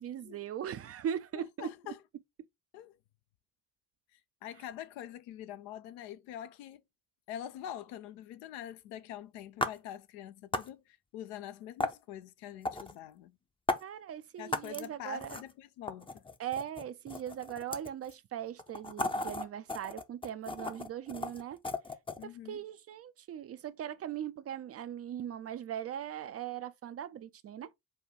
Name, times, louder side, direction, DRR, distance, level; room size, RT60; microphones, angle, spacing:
voice 1, 0.0-1.7 13.8-15.4 16.4-21.6 22.2-27.7, right 10 dB, 35° right, 0.5 m, -40 dB
voice 2, 1.3-2.0 2.7-3.0 4.1-6.8 7.3-13.3 14.4-16.2 22.2-22.6, left 11 dB, 60° left, 0.6 m, -45 dB
sound 1, 9.6-9.7 10.5-10.7 11.8-11.9 12.6-12.9 13.7-13.8 14.5-14.9 15.2-15.5 15.9-18.1 18.6-22.2, left 2 dB, 10° left, 0.6 m, -35 dB
4.7 x 2.3 x 4.1 m
figure-of-eight pair, 40°, 46 cm